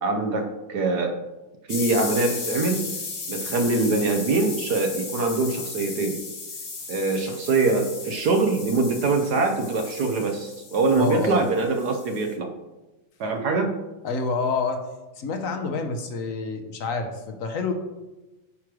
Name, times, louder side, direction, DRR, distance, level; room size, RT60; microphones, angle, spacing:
voice 1, 0.0-1.2 1.7-2.8 3.3-6.2 6.9-12.5 13.2-13.7, right 3 dB, 60° right, 5 dB, 1.2 m, -23 dB
sound 1, 1.7-12.3, left 4 dB, 40° left, 1.3 m, -36 dB
voice 2, 10.9-11.4 14.0-14.8 15.2-17.7, left 4 dB, 60° left, 5 dB, 0.9 m, -28 dB
9.4 x 3.2 x 6.1 m, 1.1 s
omnidirectional pair, 2.2 m